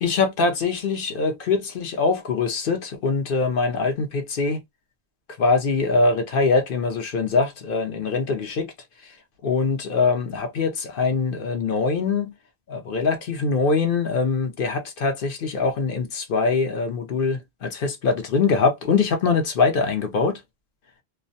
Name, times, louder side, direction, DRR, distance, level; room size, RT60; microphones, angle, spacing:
voice 1, 0.0-4.6 5.4-8.7 9.0-9.2 9.4-12.3 12.7-20.4, left 4 dB, 65° left, 0.8 m, -23 dB
2.3 x 2.1 x 2.6 m
omnidirectional pair, 1.1 m